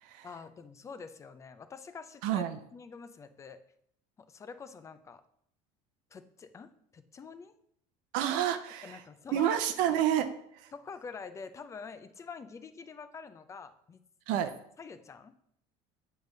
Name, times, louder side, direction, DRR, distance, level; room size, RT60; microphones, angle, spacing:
voice 1, 0.2-3.6 4.2-5.2 6.1-7.6 8.8-9.6 10.7-14.0 14.8-15.3, left 5 dB, 20° left, 10 dB, 0.6 m, -46 dB
voice 2, 2.2-2.6 8.1-9.0 9.3-10.3 10.5-10.7 14.3-14.5, right 11 dB, 75° right, 8 dB, 0.6 m, -29 dB
7.9 x 3.4 x 6.5 m, 0.69 s
cardioid pair, 140°, 14 cm